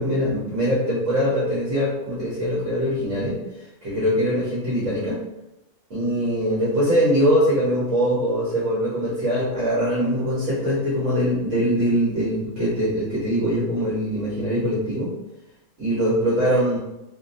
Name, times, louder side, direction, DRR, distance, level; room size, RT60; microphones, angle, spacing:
voice 1, 0.0-3.4 3.8-5.2 5.9-15.1 15.8-16.8, equal, 80° right, -8 dB, 1.2 m, -22 dB
2.7 x 2.0 x 2.6 m, 0.93 s
omnidirectional pair, 1.3 m